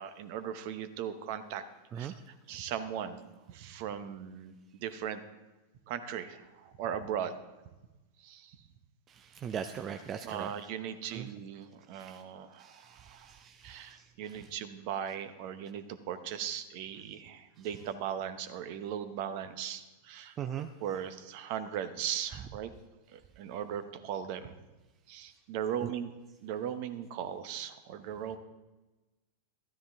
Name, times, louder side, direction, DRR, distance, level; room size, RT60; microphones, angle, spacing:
voice 1, 0.0-1.6 1.9-3.2 3.5-5.2 5.9-7.4 8.2-8.6 10.2-13.3 13.6-20.4 20.8-22.7 23.1-24.5 25.1-26.1 26.4-28.4, right 9 dB, 45° right, 12 dB, 0.9 m, -38 dB
voice 2, 9.1-10.5 11.1-11.3 11.9-12.2 12.6-14.0 20.4-20.7, right 8 dB, 30° right, 8 dB, 0.5 m, -40 dB
13.5 x 13.0 x 3.6 m, 1.1 s
figure-of-eight pair, 90°, 0 cm